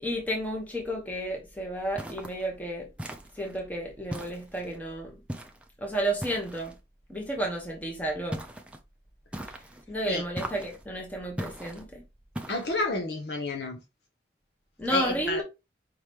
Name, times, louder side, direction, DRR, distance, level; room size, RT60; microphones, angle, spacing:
voice 1, 0.0-2.9 3.4-5.1 5.8-6.7 7.1-8.4 9.9-12.0 14.8-15.4, right 1 dB, 10° left, 1.0 m, -32 dB
sound 1, 2.0-2.4 3.0-3.6 4.1-4.8 5.3-5.7 6.2-6.8 8.3-8.8 9.3-9.8 10.4-10.8 11.4-11.8 12.4-12.8, equal, 5° right, 0.5 m, -38 dB
voice 2, 12.5-13.8 14.9-15.4, left 2 dB, 75° left, 0.9 m, -30 dB
5.1 x 3.0 x 3.4 m
head